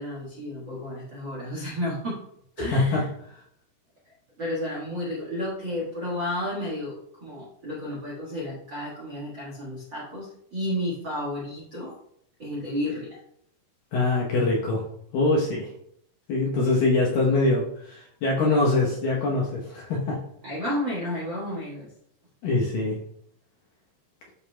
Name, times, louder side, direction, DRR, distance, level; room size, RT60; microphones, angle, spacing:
voice 1, 0.0-2.2 2.6-3.1 4.4-11.9 12.4-13.2 20.4-21.9, left 1 dB, 65° right, -6 dB, 1.1 m, -32 dB
voice 2, 2.6-3.0 13.9-14.8 15.1-15.7 16.3-20.2 22.4-23.0, left 2 dB, 70° left, -3 dB, 2.3 m, -23 dB
12.0 x 5.2 x 2.2 m, 0.72 s
omnidirectional pair, 4.7 m